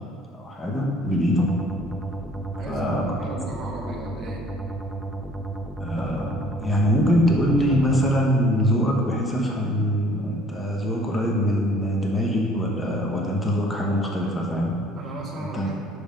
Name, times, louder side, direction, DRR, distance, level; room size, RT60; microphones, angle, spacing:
voice 1, 0.3-1.5 2.7-3.0 5.8-14.8 15.5-15.7, equal, 15° left, -1 dB, 0.9 m, -23 dB
sound 1, 1.4-8.2, right 2 dB, 10° right, 0.5 m, -33 dB
voice 2, 2.5-4.5 15.0-15.8, right 2 dB, 30° right, -2 dB, 1.3 m, -35 dB
5.9 x 5.5 x 5.2 m, 2.2 s
supercardioid pair, 125°, 0 cm